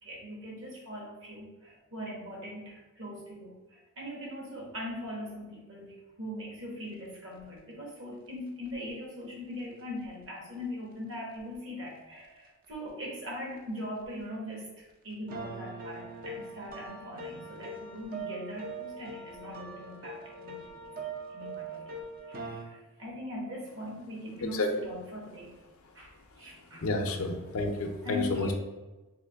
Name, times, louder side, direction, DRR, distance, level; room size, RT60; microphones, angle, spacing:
voice 1, 0.0-20.9 21.3-21.9 22.3-25.6 25.9-26.9 28.0-28.5, left 1 dB, 55° right, -2 dB, 1.3 m, -41 dB
sound 1, 7.3-7.4 8.7-8.8 10.0-10.1 11.3-11.4 12.6-12.7 14.0-14.1 15.3-22.6, right 3 dB, 40° right, 0.5 m, -42 dB
voice 2, 26.8-28.5, left 2 dB, 70° left, 4 dB, 0.5 m, -30 dB
3.6 x 2.9 x 3.4 m, 1.2 s
head